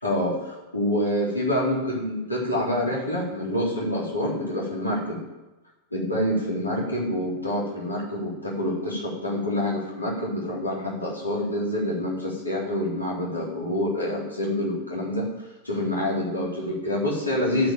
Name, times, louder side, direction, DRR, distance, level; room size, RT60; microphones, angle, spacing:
voice 1, 0.0-5.2 5.9-15.3 15.6-17.7, left 1 dB, 85° left, -5 dB, 3.8 m, -27 dB
12.5 x 5.4 x 9.1 m, 1.0 s
figure-of-eight pair, 90°, 0 cm